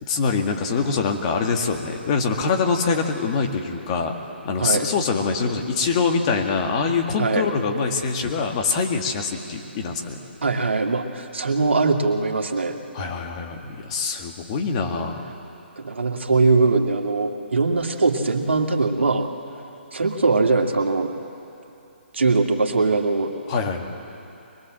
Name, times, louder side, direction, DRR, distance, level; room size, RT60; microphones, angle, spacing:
voice 1, 0.0-4.1 4.5-10.2 12.9-15.2 23.5-23.9, left 5 dB, 30° left, 3 dB, 2.0 m, -24 dB
voice 2, 4.6-4.9 7.2-7.4 10.4-12.8 15.8-19.3 19.9-21.1 22.1-23.3, right 3 dB, 80° right, 3 dB, 2.1 m, -21 dB
23.5 x 21.5 x 7.7 m, 2.8 s
hypercardioid pair, 145°, 6 cm